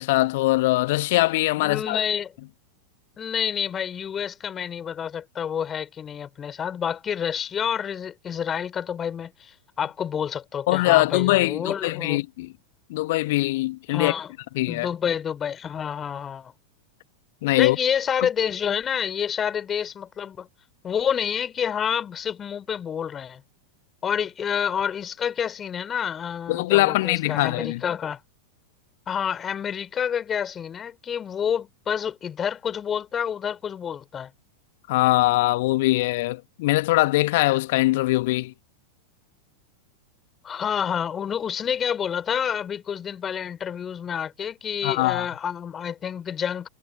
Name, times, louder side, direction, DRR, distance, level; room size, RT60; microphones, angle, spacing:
voice 1, 0.0-2.0 10.7-12.5 12.9-14.1 14.5-14.9 17.4-17.8 26.5-27.8 34.9-38.5 44.8-45.3, left 19 dB, 50° left, 1.3 m, -22 dB
voice 2, 1.6-2.3 3.2-12.2 13.9-14.3 14.7-16.5 17.6-20.5 20.8-23.4 24.0-28.2 29.1-34.3 40.4-46.7, left 8 dB, 25° left, 3.7 m, -28 dB
figure-of-eight pair, 90°, 0 cm